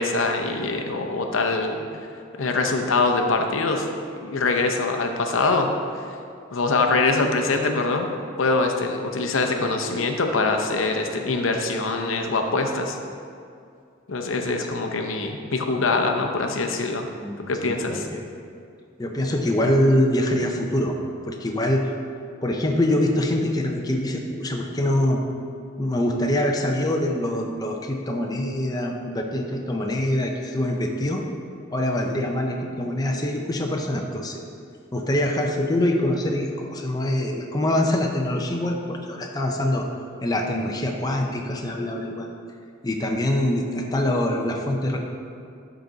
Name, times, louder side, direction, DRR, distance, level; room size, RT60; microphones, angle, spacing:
voice 1, 0.0-1.9 2.4-3.9 4.2-5.7 6.5-8.1 8.4-13.0 14.1-17.1 17.4-18.1, left 3 dB, 85° left, 4 dB, 0.7 m, -23 dB
voice 2, 17.2-18.2 19.0-21.0 21.2-21.8 22.4-25.2 25.8-31.2 31.7-34.4 34.9-39.9 40.2-42.3 42.8-45.0, left 1 dB, 20° left, 1 dB, 0.6 m, -24 dB
12.0 x 3.9 x 3.9 m, 2.4 s
head